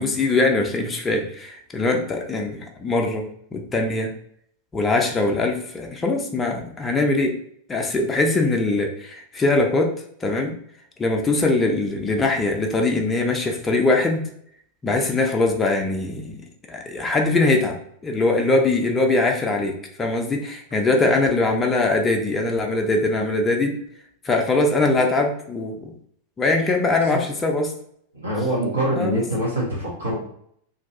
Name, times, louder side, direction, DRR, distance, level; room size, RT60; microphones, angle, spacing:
voice 1, 0.0-3.3 3.5-4.1 4.7-7.3 7.7-9.9 10.2-10.5 11.0-14.2 14.8-17.8 18.0-23.8 24.2-25.9 26.4-27.7 29.0-29.2, left 2 dB, 15° left, 2 dB, 0.4 m, -22 dB
voice 2, 28.1-30.2, right 1 dB, 75° right, -5 dB, 0.9 m, -24 dB
2.6 x 2.2 x 2.5 m, 0.67 s
figure-of-eight pair, 90°, 0 cm